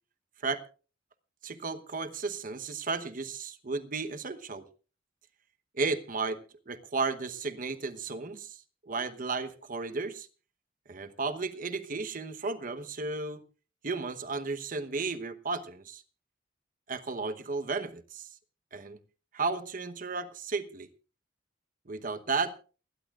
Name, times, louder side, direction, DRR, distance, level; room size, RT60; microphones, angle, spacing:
voice 1, 1.4-4.7 5.7-6.4 6.7-8.6 8.9-10.3 10.9-13.4 13.8-16.0 16.9-18.3 18.7-19.0 19.3-20.9 21.9-22.6, right 4 dB, 50° right, 1.0 m, -34 dB
29.0 x 11.0 x 2.4 m
head